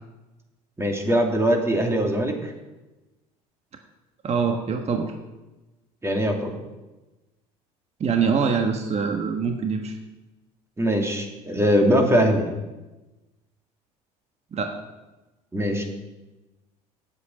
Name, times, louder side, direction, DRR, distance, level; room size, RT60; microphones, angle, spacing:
voice 1, 0.8-2.5 6.0-6.6 10.8-12.5 15.5-15.8, equal, 15° right, 2 dB, 2.7 m, -21 dB
voice 2, 4.2-5.1 8.0-10.0 14.5-14.8, right 5 dB, 35° right, 4 dB, 1.4 m, -24 dB
8.3 x 8.1 x 9.0 m, 1.1 s
supercardioid pair, 80°, 18 cm